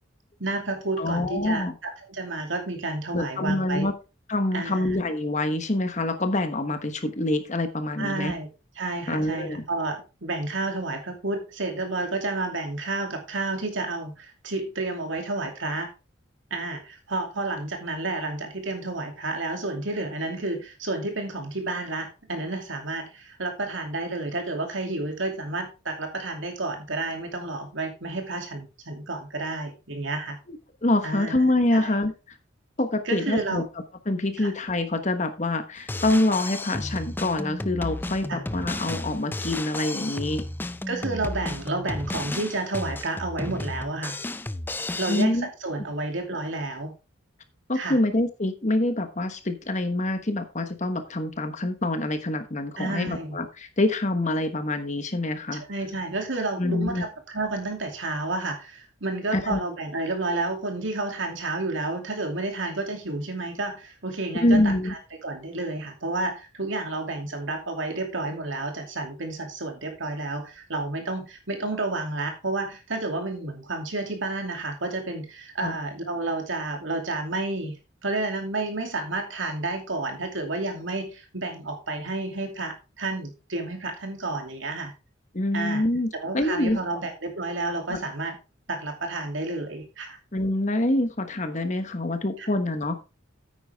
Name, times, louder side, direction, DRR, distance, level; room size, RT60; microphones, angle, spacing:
voice 1, 0.4-1.6 2.0-3.9 4.5-4.9 8.0-8.5 8.8-15.9 16.5-30.4 31.0-31.3 31.7-32.0 33.0-33.6 34.4-34.5 38.3-38.4 40.9-44.2 45.0-46.9 47.7-48.0 52.8-53.4 55.7-77.8 78.0-84.9 85.5-85.8 86.1-88.4 88.7-90.2 92.4-92.5, right 2 dB, 70° right, 4 dB, 2.6 m, -30 dB
voice 2, 1.0-1.7 3.1-3.9 4.3-8.3 9.1-9.6 30.5-30.6 30.8-32.1 32.8-33.6 34.1-40.4 45.1-45.5 47.7-55.6 56.6-57.0 59.3-59.6 64.4-64.9 75.6-75.8 85.3-86.8 87.9-88.0 90.3-93.0, left 1 dB, 35° left, 8 dB, 1.2 m, -25 dB
Drum kit, 35.8-45.2, left 2 dB, 10° left, 0.4 m, -33 dB
9.4 x 9.0 x 3.5 m, 0.30 s
head